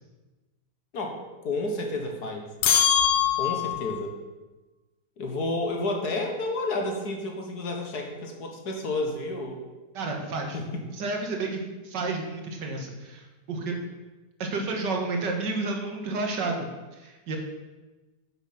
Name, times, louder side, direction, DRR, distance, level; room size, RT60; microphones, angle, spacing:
voice 1, 1.4-2.5 3.4-4.1 5.2-9.6 10.5-10.8, left 2 dB, 65° left, 2 dB, 1.8 m, -30 dB
sound 1, 2.6-4.0, left 9 dB, 85° left, 1.4 m, -22 dB
voice 2, 9.9-10.6 10.9-13.7 14.4-17.4, right 3 dB, 80° right, 2 dB, 2.1 m, -31 dB
9.6 x 6.5 x 5.9 m, 1.2 s
omnidirectional pair, 1.8 m